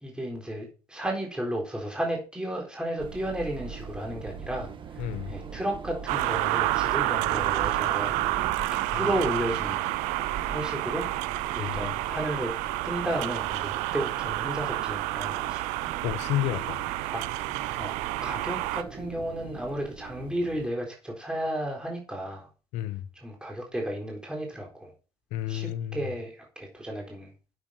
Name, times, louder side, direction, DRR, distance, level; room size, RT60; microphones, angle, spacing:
voice 1, 0.0-8.2 8.5-8.6 8.9-9.9 10.5-11.1 11.5-12.5 12.8-15.6 17.0-17.2 17.8-17.9 18.2-22.5 23.2-24.9 25.5-27.3, right 1 dB, 5° right, 4.0 m, -33 dB
sound 1, 3.0-20.7, right 6 dB, 45° right, 1.7 m, -41 dB
voice 2, 5.0-5.3 8.9-9.1 11.6-11.9 16.0-16.8 22.7-23.1 25.3-26.1, left 13 dB, 85° left, 1.1 m, -31 dB
sound 2, 6.1-18.8, right 18 dB, 90° right, 0.6 m, -29 dB
9.0 x 7.7 x 5.8 m
supercardioid pair, 80°, 12 cm